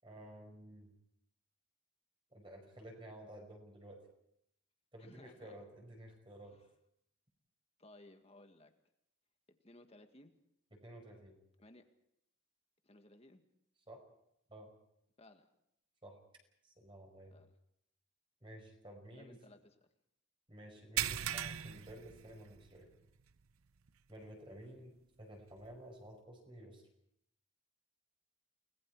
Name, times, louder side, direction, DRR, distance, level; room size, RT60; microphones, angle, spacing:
voice 1, 0.0-0.9 2.3-4.0 4.9-6.6 10.7-11.4 13.9-14.0 14.5-14.7 16.0-16.2 16.6-17.4 18.4-19.4 20.5-22.9 24.1-26.8, right 1 dB, 25° right, 2 dB, 5.3 m, -53 dB
voice 2, 5.0-5.6 6.5-6.7 7.8-8.7 9.5-10.3 11.6-11.8 12.8-13.4 15.2-15.5 17.3-17.5 19.1-19.9, left 1 dB, 30° left, 6 dB, 1.8 m, -60 dB
sound 1, 21.0-22.8 23.2-23.4 23.9-24.0 25.6-25.7, right 11 dB, 80° right, 0.7 m, -38 dB
29.5 x 20.0 x 4.8 m, 0.76 s
head